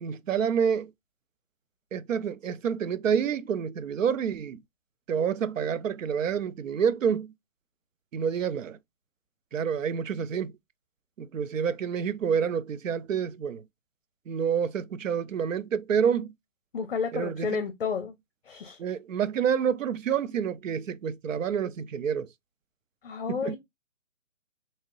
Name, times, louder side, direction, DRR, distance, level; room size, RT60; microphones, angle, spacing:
voice 1, 0.0-0.9 1.9-4.6 5.1-7.3 8.1-8.8 9.5-10.5 11.2-13.6 14.3-16.3 17.1-17.6 18.8-22.3 23.3-23.6, right 7 dB, 75° right, 0.6 m, -28 dB
voice 2, 16.7-18.1 18.5-18.8 23.0-23.6, left 5 dB, 45° left, 0.6 m, -31 dB
3.5 x 2.8 x 3.0 m
hypercardioid pair, 160°, 40 cm